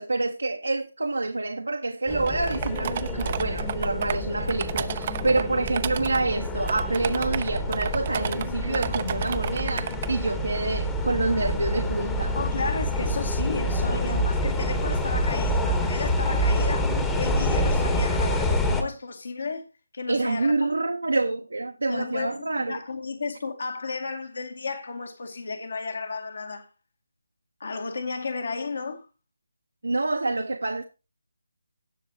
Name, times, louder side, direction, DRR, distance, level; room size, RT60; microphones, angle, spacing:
voice 1, 0.0-12.4 20.1-22.8 29.8-30.8, right 2 dB, 80° right, 1.1 m, -27 dB
sound 1, 2.1-18.8, equal, 10° left, 1.1 m, -27 dB
sound 2, 2.3-4.2 4.5-6.2 6.7-8.5 8.7-10.1, right 9 dB, 35° right, 0.6 m, -32 dB
voice 2, 12.4-16.9 17.1-19.6 19.9-20.7 21.9-26.7 27.6-29.1, left 4 dB, 60° left, 2.0 m, -33 dB
18.5 x 6.4 x 2.8 m
figure-of-eight pair, 155°, 0 cm